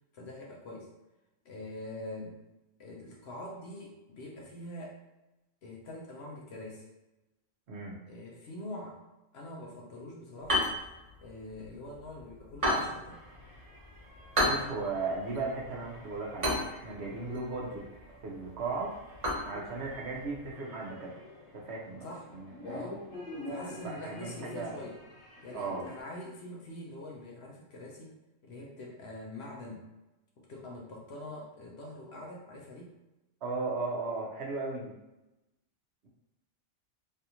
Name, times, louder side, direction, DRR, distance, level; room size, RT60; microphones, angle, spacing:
voice 1, 0.1-0.9 1.4-2.4 2.8-5.0 5.6-6.9 8.1-9.0 9.3-10.7 11.2-13.2 17.2-17.4 22.0-22.3 22.7-23.0 23.5-25.0 25.4-28.1 28.4-29.9 30.4-32.9, left 1 dB, 60° left, -2 dB, 0.8 m, -44 dB
voice 2, 7.7-8.0 14.4-17.9 18.2-18.9 19.4-21.1 21.5-22.0 22.3-22.9 23.8-24.8 25.5-25.9 33.4-34.9, right 3 dB, 60° right, -2 dB, 0.9 m, -36 dB
sound 1, 10.4-20.5, equal, 30° right, 1.0 m, -35 dB
sound 2, 13.1-26.0, left 1 dB, 85° left, 1.4 m, -48 dB
3.4 x 2.5 x 2.8 m, 1.0 s
omnidirectional pair, 1.4 m